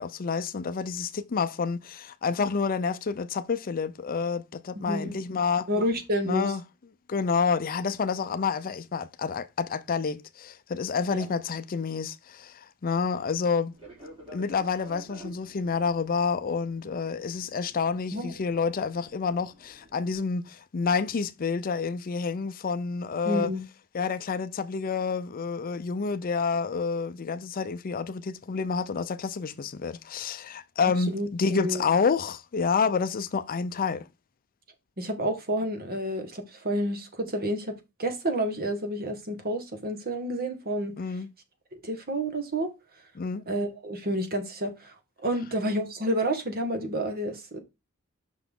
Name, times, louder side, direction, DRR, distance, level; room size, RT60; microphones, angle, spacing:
voice 1, 0.0-5.7 6.2-6.6 7.1-13.7 14.3-23.5 23.9-34.1 41.0-41.3 43.2-43.5, left 5 dB, 40° left, 0.5 m, -29 dB
voice 2, 4.7-5.1 5.7-6.5 11.1-11.3 18.1-18.3 23.2-23.6 31.1-31.8 35.0-37.7 38.0-40.9 41.8-42.7 43.5-44.9 45.2-47.6, equal, 45° right, 1.6 m, -29 dB
Fixed-wing aircraft airplane, 13.7-20.1, right 1 dB, 25° right, 3.1 m, -50 dB
6.1 x 5.8 x 3.6 m
head